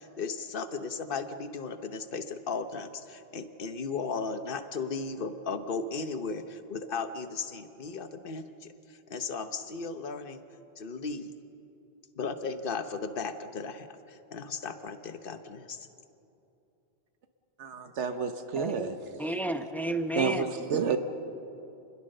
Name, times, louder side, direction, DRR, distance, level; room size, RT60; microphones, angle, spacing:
voice 1, 0.0-10.4 10.8-11.3 12.1-15.8, left 4 dB, 55° left, 9 dB, 1.2 m, -36 dB
voice 2, 17.6-19.0 20.2-21.0, right 6 dB, 85° right, 7 dB, 1.3 m, -30 dB
voice 3, 18.5-20.5, right 1 dB, ahead, 7 dB, 0.9 m, -32 dB
28.0 x 21.0 x 6.7 m, 2.9 s
omnidirectional pair, 1.2 m